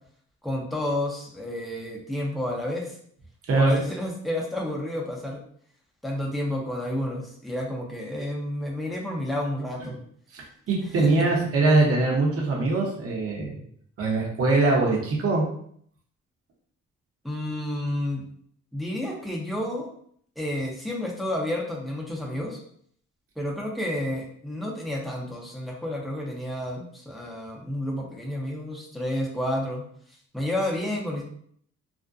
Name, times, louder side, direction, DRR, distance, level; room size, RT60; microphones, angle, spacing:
voice 1, 0.4-3.0 3.5-5.4 6.0-10.0 11.0-11.3 17.2-18.2 18.7-19.9 20.4-22.6 23.4-29.8 30.3-31.2, left 1 dB, ahead, -2 dB, 0.6 m, -30 dB
voice 2, 10.3-13.6 14.0-15.4, right 3 dB, 50° right, -2 dB, 0.8 m, -22 dB
2.4 x 2.1 x 2.4 m, 0.63 s
cardioid pair, 90°, 30 cm